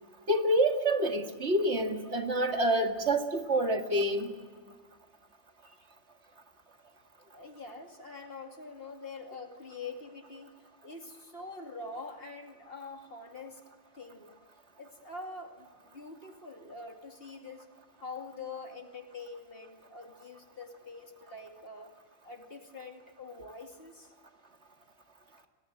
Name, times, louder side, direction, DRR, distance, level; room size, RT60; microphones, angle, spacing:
voice 1, 0.3-4.3, right 1 dB, 60° right, 5 dB, 2.2 m, -27 dB
voice 2, 7.3-10.5 10.8-13.6 13.9-14.3 14.8-17.7 18.0-21.9 22.2-24.1, left 3 dB, 45° left, 4 dB, 2.7 m, -45 dB
29.0 x 21.0 x 7.8 m, 1.5 s
omnidirectional pair, 1.3 m